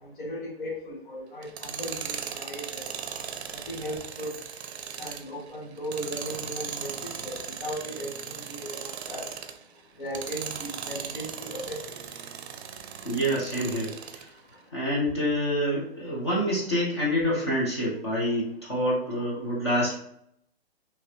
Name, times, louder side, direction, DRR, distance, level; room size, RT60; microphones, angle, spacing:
voice 1, 0.0-2.9 3.7-4.3 5.0-9.3 10.0-11.8, equal, 50° left, -3 dB, 1.3 m, -37 dB
Tools, 1.4-9.6 10.1-14.3, right 7 dB, 85° right, 0.5 m, -38 dB
voice 2, 13.0-14.3 14.7-19.9, equal, 25° left, -6 dB, 0.7 m, -27 dB
2.9 x 2.6 x 3.1 m, 0.73 s
hypercardioid pair, 180°, 32 cm